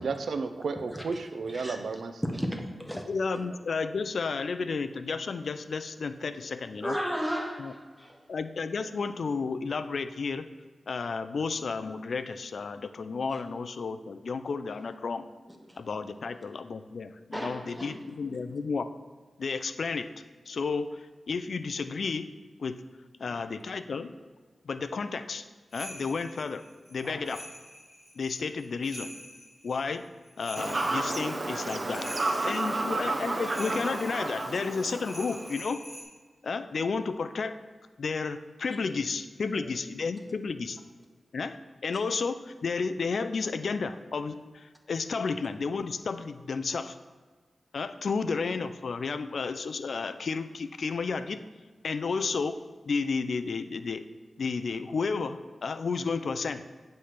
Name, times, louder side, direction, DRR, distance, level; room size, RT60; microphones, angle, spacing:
voice 1, 0.0-2.2 3.4-3.5, right 4 dB, 80° right, 8 dB, 0.5 m, -33 dB
voice 2, 2.2-3.0 6.8-8.2 15.5-15.8 17.3-18.4 23.2-23.5 27.0-27.3 31.9-33.0 39.5-39.7, equal, 5° right, 3 dB, 0.9 m, -36 dB
voice 3, 3.1-7.0 7.6-7.7 8.3-10.5 10.9-15.3 15.8-18.9 19.4-20.1 20.5-21.0 21.3-22.3 22.6-22.8 23.2-24.1 24.7-25.4 25.7-26.6 26.9-27.5 28.2-29.1 29.6-30.0 30.4-32.0 32.4-35.8 36.4-37.6 38.0-40.8 41.3-47.0 47.7-51.4 51.8-52.6 52.8-54.0 54.4-56.6, left 4 dB, 70° left, 11 dB, 0.4 m, -32 dB
sound 1, 25.7-36.0, left 1 dB, 15° left, 2.2 m, -46 dB
Fowl / Bird vocalization bird call bird song, 30.6-35.6, right 2 dB, 40° right, 0.7 m, -31 dB
8.2 x 3.2 x 5.8 m, 1.4 s
wide cardioid pair, 80°, 0 cm